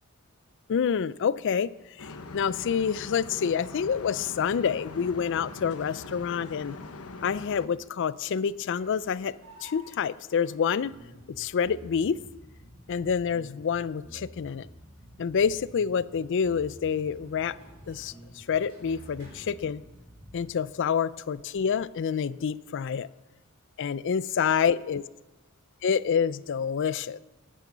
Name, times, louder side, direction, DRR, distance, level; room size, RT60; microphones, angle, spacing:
voice 1, 0.7-1.7 2.0-6.8 7.2-9.3 9.6-10.9 11.3-12.2 12.9-14.7 15.2-17.6 17.9-19.8 20.3-23.1 23.8-25.0 25.8-27.2, left 7 dB, 60° left, 19 dB, 0.4 m, -27 dB
sound 1, 2.0-7.7, left 3 dB, 75° left, 1.0 m, -42 dB
sound 2, 8.1-22.1, equal, 90° right, 4.6 m, -58 dB
sound 3, 10.9-20.5, equal, 20° right, 4.0 m, -50 dB
10.5 x 9.8 x 7.3 m, 1.0 s
head